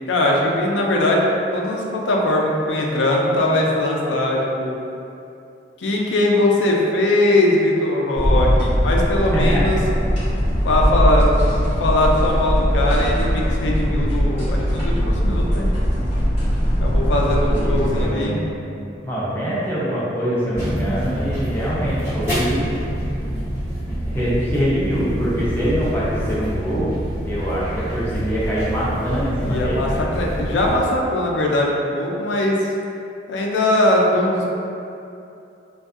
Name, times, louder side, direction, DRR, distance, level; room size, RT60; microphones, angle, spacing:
voice 1, 0.1-4.8 5.8-9.8 10.6-11.3 11.6-15.7 16.8-18.4 29.4-32.7 33.3-34.5, left 1 dB, 85° left, -1 dB, 0.4 m, -20 dB
sound 1, 8.1-18.1, equal, 35° left, 0.8 m, -20 dB
voice 2, 9.3-9.6 17.5-18.5 19.0-22.7 24.0-26.9 27.3-30.1, equal, 10° left, -9 dB, 0.5 m, -24 dB
sound 2, 20.5-30.8, right 1 dB, 15° right, 1.0 m, -26 dB
2.6 x 2.2 x 2.4 m, 2.7 s
head